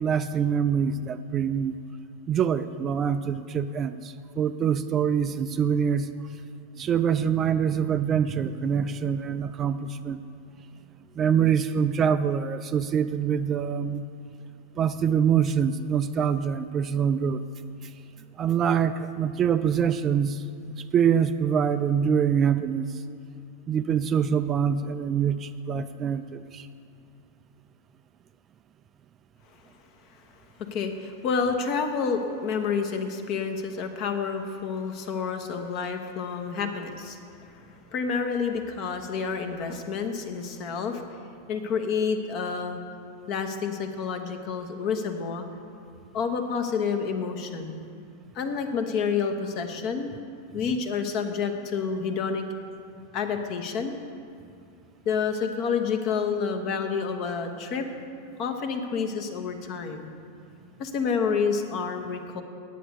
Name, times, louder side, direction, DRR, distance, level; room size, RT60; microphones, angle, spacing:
voice 1, 0.0-1.8 2.3-6.1 6.8-10.2 11.2-14.1 14.8-17.4 17.8-17.9 18.4-20.4 20.8-23.0 23.7-26.7, right 7 dB, 25° right, 11 dB, 0.3 m, -25 dB
voice 2, 30.7-37.2 37.5-37.6 37.9-41.0 41.5-42.8 43.3-45.4 46.1-47.8 48.3-50.1 50.5-52.4 53.1-54.0 55.0-57.9 58.4-60.1 60.8-62.4, left 5 dB, 40° left, 6 dB, 1.1 m, -29 dB
9.9 x 8.2 x 6.9 m, 2.5 s
figure-of-eight pair, 90°, 0 cm